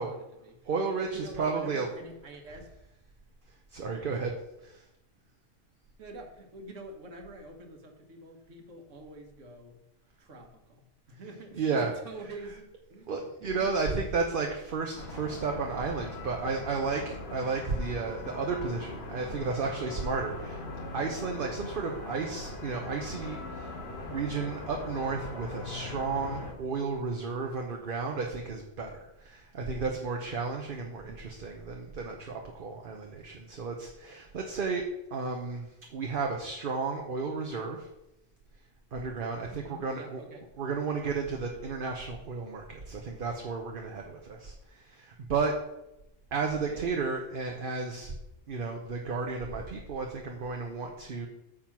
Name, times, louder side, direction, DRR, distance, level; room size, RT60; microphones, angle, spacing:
voice 1, 0.0-0.7 1.0-2.7 3.9-4.2 6.0-9.8 10.2-13.7 31.0-31.1 39.5-40.5 46.5-46.9, right 2 dB, 65° right, 3 dB, 1.6 m, -47 dB
voice 2, 0.6-1.9 3.5-4.3 4.6-4.9 11.6-11.9 13.1-20.6 20.9-23.8 24.1-37.9 38.9-40.2 40.6-45.5 46.3-48.1 48.5-51.3, right 4 dB, 45° right, 2 dB, 0.9 m, -33 dB
sound 1, 14.9-26.5, left 2 dB, 50° left, 1.6 m, -41 dB
8.8 x 3.8 x 5.9 m, 0.90 s
omnidirectional pair, 1.4 m